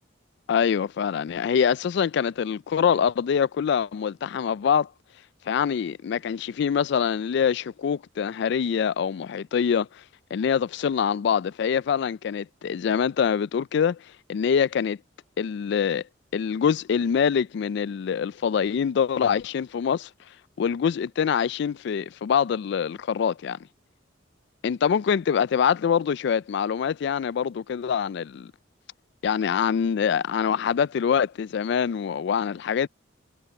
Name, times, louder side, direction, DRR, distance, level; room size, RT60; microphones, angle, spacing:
voice 1, 0.5-4.9 5.5-9.9 10.3-14.0 14.3-15.0 15.4-16.0 16.3-20.1 20.6-23.6 24.6-28.5 29.2-32.9, left 7 dB, 65° left, 0.3 m, -24 dB
head